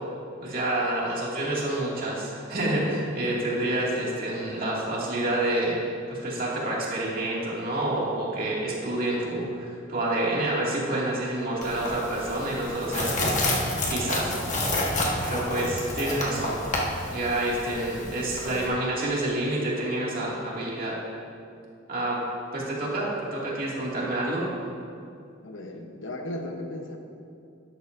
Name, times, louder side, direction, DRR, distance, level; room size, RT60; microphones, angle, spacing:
voice 1, 0.4-5.8 6.1-13.6 13.9-14.6 15.2-16.6 17.1-20.9 21.9-22.2 22.5-24.5, right 1 dB, 45° right, -5 dB, 2.3 m, -28 dB
sound 1, 11.6-18.7, left 1 dB, 40° left, 1.4 m, -29 dB
voice 2, 25.4-27.0, left 1 dB, 70° left, 3 dB, 1.0 m, -36 dB
13.0 x 10.5 x 2.6 m, 2.5 s
head